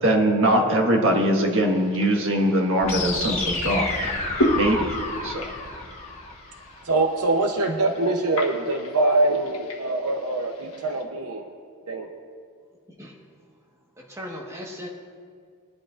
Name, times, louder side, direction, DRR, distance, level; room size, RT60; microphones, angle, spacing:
voice 1, 0.0-4.1 4.5-4.9 5.2-5.5, right 1 dB, 60° right, 1 dB, 1.6 m, -21 dB
sound 1, 1.1-11.0, left 1 dB, 65° left, 1.5 m, -34 dB
sound 2, 2.8-6.8, left 2 dB, 30° left, 1.3 m, -30 dB
voice 2, 6.8-11.5 11.9-12.1, right 2 dB, 75° right, 4 dB, 0.8 m, -24 dB
voice 3, 14.0-14.9, equal, 15° right, -2 dB, 1.4 m, -37 dB
21.0 x 11.0 x 2.5 m, 2.1 s
head